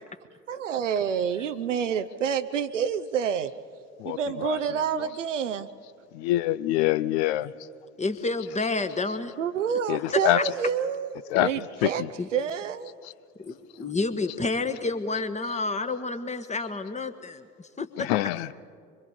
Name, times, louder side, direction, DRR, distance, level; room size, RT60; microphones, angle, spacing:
voice 1, 0.5-3.5 4.0-5.7 9.4-12.0 12.3-12.9, right 7 dB, 80° right, 9 dB, 0.7 m, -28 dB
voice 2, 4.0-4.6 4.9-5.1 6.1-7.5 9.9-10.4 11.3-11.5 11.8-12.1 13.0-13.1 18.0-18.5, left 16 dB, 60° left, 18 dB, 0.7 m, -25 dB
voice 3, 8.0-9.3 10.3-10.4 12.2-12.3 13.4-18.1, left 3 dB, 20° left, 9 dB, 1.5 m, -30 dB
24.5 x 24.5 x 5.1 m, 2.2 s
figure-of-eight pair, 55°, 37 cm